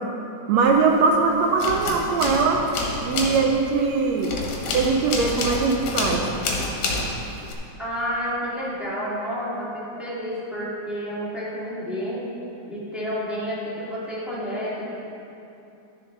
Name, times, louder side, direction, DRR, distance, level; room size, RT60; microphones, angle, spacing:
voice 1, 0.5-2.7 3.0-4.3 4.7-6.3, right 4 dB, 75° right, 2 dB, 1.8 m, -21 dB
sound 1, 0.7-1.2 1.5-7.5, left 2 dB, 70° left, 2.1 m, -28 dB
voice 2, 7.8-12.3 12.7-14.8, equal, ahead, -9 dB, 1.6 m, -30 dB
11.5 x 7.0 x 3.9 m, 2.9 s
omnidirectional pair, 3.4 m